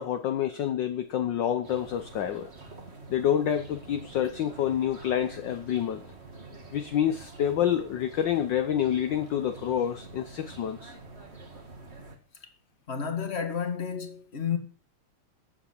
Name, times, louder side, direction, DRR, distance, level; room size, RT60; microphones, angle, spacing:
voice 1, 0.0-2.5 3.1-6.0 6.7-11.0, left 10 dB, 65° left, 1.4 m, -28 dB
sound 1, 1.6-12.2, right 3 dB, 30° right, 2.2 m, -47 dB
voice 2, 12.9-14.6, left 7 dB, 30° left, 2.0 m, -31 dB
15.5 x 7.5 x 7.4 m
omnidirectional pair, 2.4 m